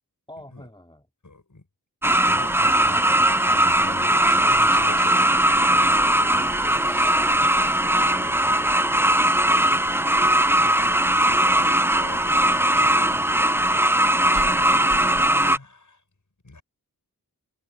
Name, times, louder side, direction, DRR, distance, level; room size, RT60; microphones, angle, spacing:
voice 1, 0.3-1.1 6.6-8.4 8.7-9.3, left 1 dB, 10° left, 2.6 m, -48 dB
voice 2, 1.2-1.7 2.2-7.1 7.4-7.8 10.0-13.9 14.3-16.0 16.4-16.6, left 2 dB, 50° left, 7.6 m, -44 dB
sound 1, 2.0-15.6, right 1 dB, 5° right, 0.4 m, -19 dB
wide cardioid pair, 65°, 38 cm